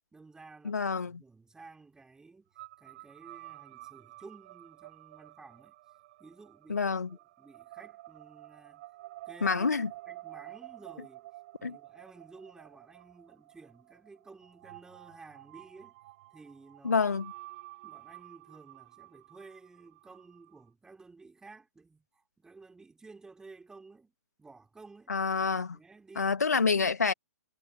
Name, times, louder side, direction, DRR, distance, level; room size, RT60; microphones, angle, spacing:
voice 1, 0.1-2.5 2.8-5.8 6.2-6.9 7.4-8.8 9.3-9.8 10.1-11.3 11.6-16.0 16.3-17.1 17.8-24.1 24.4-25.1 25.7-26.7, right 3 dB, 5° right, 3.5 m, -53 dB
voice 2, 0.6-1.2 6.7-7.2 9.4-9.9 11.6-11.8 16.8-17.3 25.1-25.8 26.2-27.1, left 5 dB, 70° left, 1.8 m, -28 dB
sound 1, 2.6-20.7, right 17 dB, 40° right, 4.3 m, -51 dB
figure-of-eight pair, 120°, 9 cm